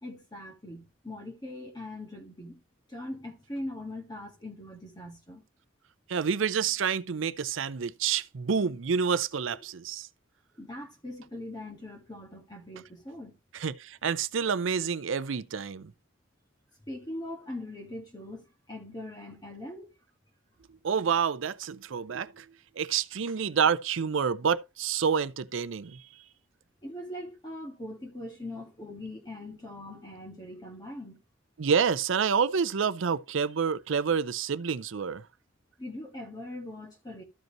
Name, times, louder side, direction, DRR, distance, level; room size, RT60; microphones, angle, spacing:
voice 1, 0.0-2.6 2.9-5.4 9.5-9.6 10.6-13.3 16.8-19.9 26.8-31.2 35.8-37.2, left 1 dB, 20° left, 1.6 m, -41 dB
voice 2, 6.1-10.1 13.5-15.9 20.8-22.5 22.8-26.0 31.6-35.2, right 6 dB, 75° right, 0.5 m, -28 dB
13.5 x 5.3 x 3.0 m
head